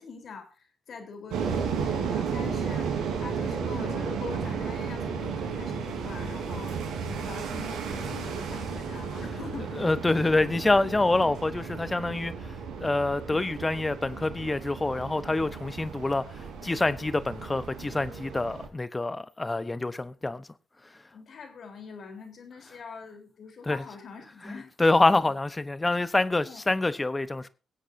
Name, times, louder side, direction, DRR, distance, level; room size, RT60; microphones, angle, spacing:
voice 1, 0.0-9.9 21.1-24.7 25.2-25.3 26.4-26.6, left 5 dB, 60° left, 3.9 m, -44 dB
sound 1, 1.3-18.7, right 6 dB, 80° right, 3.9 m, -34 dB
voice 2, 9.8-12.3 12.8-16.3 16.6-20.5 23.7-23.8 24.4-27.5, left 2 dB, 25° left, 1.0 m, -26 dB
23.0 x 8.1 x 2.7 m
supercardioid pair, 55°, 0 cm